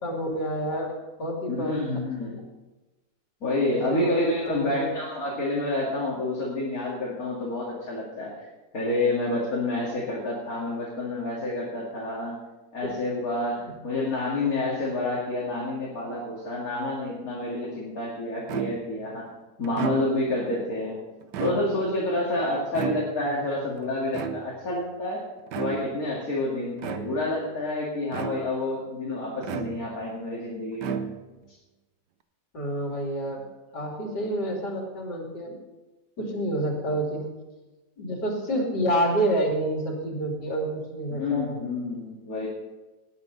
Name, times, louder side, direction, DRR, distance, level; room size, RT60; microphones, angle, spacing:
voice 1, 0.0-1.8 2.3-2.4 3.9-4.1 4.5-4.9 32.5-33.4 33.7-35.6 36.2-37.2 38.0-41.6, right 1 dB, 80° left, 0 dB, 3.4 m, -28 dB
voice 2, 1.5-2.5 3.4-8.5 8.7-12.3 12.7-19.3 19.6-21.0 21.4-25.2 25.5-31.0 41.1-42.5, left 2 dB, 55° left, -4 dB, 2.7 m, -28 dB
sound 1, 18.5-19.0 19.6-20.4 21.2-22.0 22.7-23.4 24.1-24.8 25.5-26.0 26.8-27.4 28.1-28.7 29.4-30.1 30.8-31.5, right 8 dB, 85° right, 1.4 m, -34 dB
18.0 x 10.5 x 4.0 m, 1.1 s
omnidirectional pair, 1.8 m